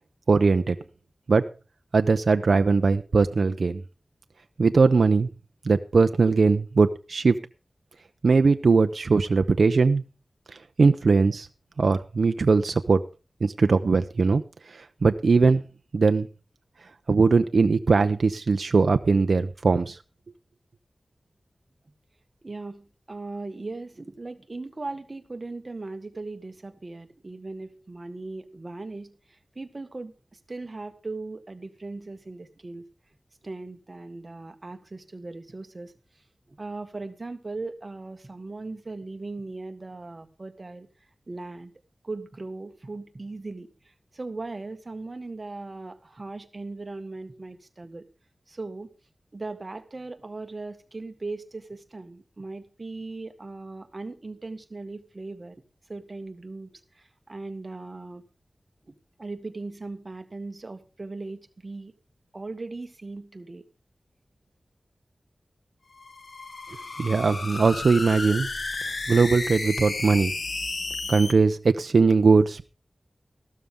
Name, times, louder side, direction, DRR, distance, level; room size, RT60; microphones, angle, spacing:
voice 1, 0.3-0.8 1.3-1.5 1.9-3.8 4.6-5.3 5.6-7.4 8.2-10.0 10.8-11.5 11.8-13.0 13.4-14.4 14.7-15.6 15.9-16.3 17.1-20.0 67.0-68.5 69.1-70.3 71.1-72.7, right 4 dB, 70° right, 8 dB, 0.7 m, -20 dB
voice 2, 22.4-29.1 29.5-30.1 30.5-32.8 33.4-35.9 36.5-40.9 41.3-41.7 42.0-43.7 44.1-48.0 48.5-48.9 49.3-55.6 55.9-58.2 58.9-61.9 62.3-63.6, right 3 dB, 40° right, 8 dB, 1.7 m, -38 dB
sound 1, 65.9-71.3, left 3 dB, 60° left, 1.3 m, -33 dB
14.5 x 12.5 x 3.6 m, 0.34 s
wide cardioid pair, 95°, 0 cm